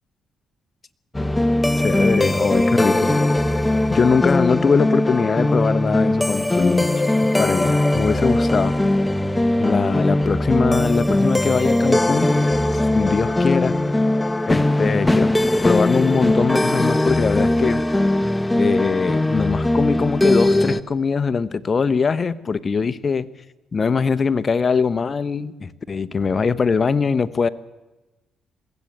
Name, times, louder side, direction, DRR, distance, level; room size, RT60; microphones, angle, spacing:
sound 1, 1.1-20.8, left 1 dB, 10° left, 0.8 m, -20 dB
voice 1, 1.8-3.2 3.9-7.0 7.4-8.7 9.6-12.3 12.9-13.7 14.5-15.3 15.6-17.8 18.6-23.3 23.7-27.5, left 5 dB, 35° left, 14 dB, 1.0 m, -21 dB
22.0 x 16.0 x 8.6 m, 1.1 s
cardioid pair, 90°, 0 cm